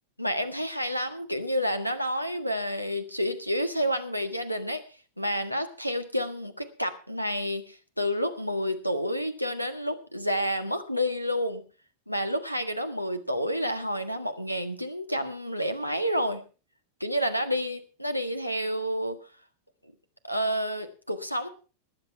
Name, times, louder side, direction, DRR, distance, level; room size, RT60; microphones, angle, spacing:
voice 1, 0.2-4.8 5.2-11.6 12.1-16.4 17.0-19.2 20.2-21.5, equal, 90° left, 9 dB, 1.6 m, -29 dB
19.5 x 8.1 x 5.7 m, 0.36 s
figure-of-eight pair, 90°, 0 cm